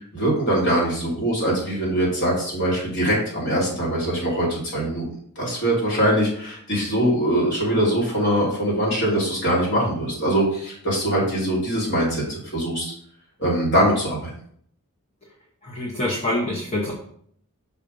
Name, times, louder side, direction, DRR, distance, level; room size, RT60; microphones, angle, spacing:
voice 1, 0.1-5.1 5.4-12.9 13.4-14.3, right 1 dB, 55° left, -4 dB, 2.7 m, -22 dB
voice 2, 15.6-16.9, left 1 dB, 30° left, -3 dB, 0.9 m, -25 dB
5.7 x 5.1 x 3.8 m, 0.63 s
head